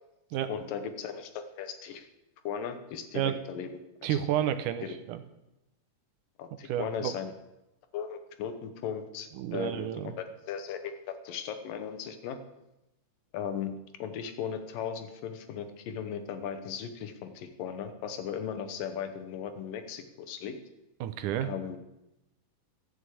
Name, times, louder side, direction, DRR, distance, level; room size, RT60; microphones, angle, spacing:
voice 1, 0.5-2.1 2.4-3.7 4.1-4.2 4.8-4.9 6.4-7.3 7.9-9.9 10.2-12.4 13.3-13.7 14.0-20.6 21.4-21.8, left 8 dB, 90° left, 9 dB, 2.7 m, -37 dB
voice 2, 4.0-5.2 6.7-7.1 9.4-10.1 21.0-21.5, right 11 dB, 80° right, 10 dB, 2.2 m, -30 dB
13.0 x 6.3 x 8.4 m, 0.93 s
omnidirectional pair, 3.8 m